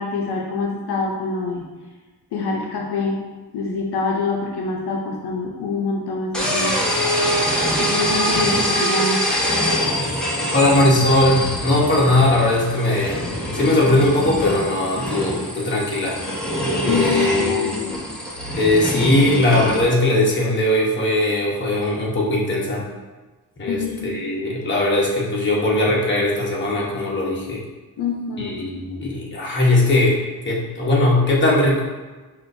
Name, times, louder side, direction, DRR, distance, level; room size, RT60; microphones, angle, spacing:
voice 1, 0.0-1.7 2.3-3.2 3.5-6.8 7.8-9.2 16.8-17.9 23.6-24.2 28.0-28.6, left 3 dB, 75° left, -1 dB, 0.6 m, -25 dB
sound 1, 6.3-19.8, equal, ahead, 0.8 m, -24 dB
voice 2, 10.5-13.2 13.5-16.2 16.8-17.8 18.6-22.8 23.6-27.6 28.4-30.2 30.4-31.8, left 1 dB, 30° left, -4 dB, 1.0 m, -19 dB
6.0 x 2.6 x 2.6 m, 1.3 s
cardioid pair, 100°, 40 cm